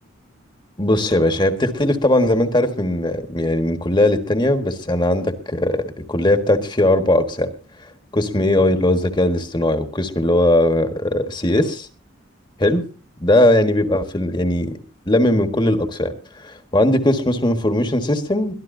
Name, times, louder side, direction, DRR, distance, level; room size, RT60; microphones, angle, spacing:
voice 1, 0.8-7.5 8.1-11.9 12.6-12.8 13.2-14.8 15.1-16.1 16.4-18.5, left 1 dB, 20° left, 7 dB, 1.5 m, -19 dB
22.0 x 13.5 x 2.7 m, 0.36 s
head